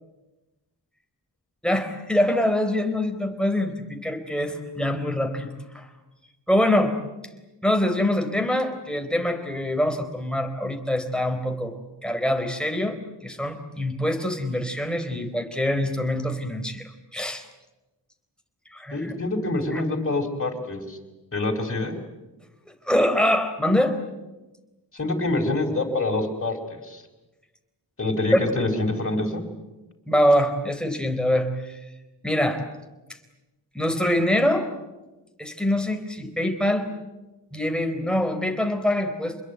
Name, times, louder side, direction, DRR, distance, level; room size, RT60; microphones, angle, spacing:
voice 1, 1.6-5.9 6.5-6.9 7.6-11.8 12.0-17.4 18.7-19.1 19.7-19.8 22.9-24.0 28.3-28.4 30.1-31.8 32.2-32.6 33.7-34.7 35.4-36.9 37.5-39.4, left 1 dB, ahead, 5 dB, 4.0 m, -24 dB
voice 2, 18.9-21.0 21.3-22.0 24.9-26.6 26.8-27.0 28.0-29.4, left 2 dB, 30° left, 1 dB, 4.9 m, -26 dB
27.0 x 21.5 x 9.2 m, 1.1 s
cardioid pair, 70°, 43 cm